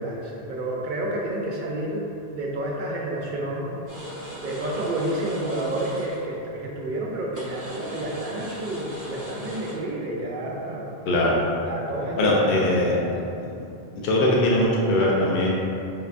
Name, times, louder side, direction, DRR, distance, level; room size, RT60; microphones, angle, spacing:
voice 1, 0.0-2.0 2.3-3.7 4.4-10.9 11.7-13.1, right 1 dB, 60° right, -4 dB, 0.7 m, -30 dB
sound 1, 3.9-6.2 7.3-9.7, equal, 20° right, 0.8 m, -38 dB
voice 2, 11.1-11.4 12.2-13.0 14.0-15.6, left 1 dB, 65° left, -4 dB, 0.7 m, -21 dB
5.6 x 2.2 x 2.5 m, 2.6 s
omnidirectional pair, 1.1 m